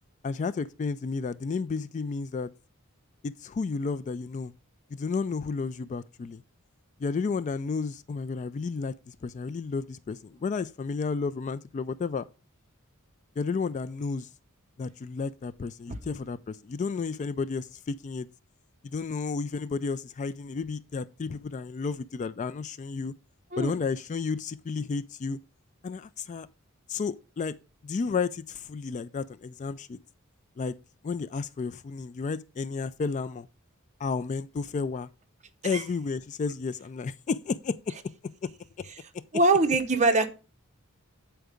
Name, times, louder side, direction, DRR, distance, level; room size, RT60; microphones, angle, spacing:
voice 1, 0.2-2.5 3.2-4.5 4.9-6.4 7.0-12.2 13.4-14.3 14.8-18.3 18.8-23.1 23.6-25.4 25.8-26.5 26.9-27.5 27.8-30.0 30.6-30.8 31.0-33.5 34.0-35.1 35.6-37.8 38.4-38.5 38.8-38.9, left 4 dB, 35° left, 0.3 m, -32 dB
voice 2, 39.3-40.3, right 2 dB, 35° right, 0.9 m, -22 dB
8.1 x 4.6 x 5.0 m
head